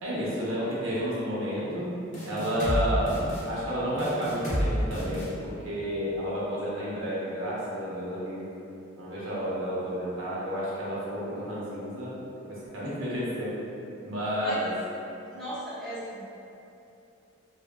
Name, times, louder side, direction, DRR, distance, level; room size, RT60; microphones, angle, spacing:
voice 1, 0.0-1.9 2.2-8.5 9.0-12.2 12.5-13.5 14.0-14.7, equal, 70° right, -8 dB, 0.8 m, -31 dB
sound 1, 2.1-2.8 3.1-3.4 4.0-4.6 4.9-5.3, equal, 35° left, 0.8 m, -30 dB
voice 2, 15.3-16.2, equal, ahead, -11 dB, 0.5 m, -37 dB
3.0 x 2.7 x 2.2 m, 2.8 s
head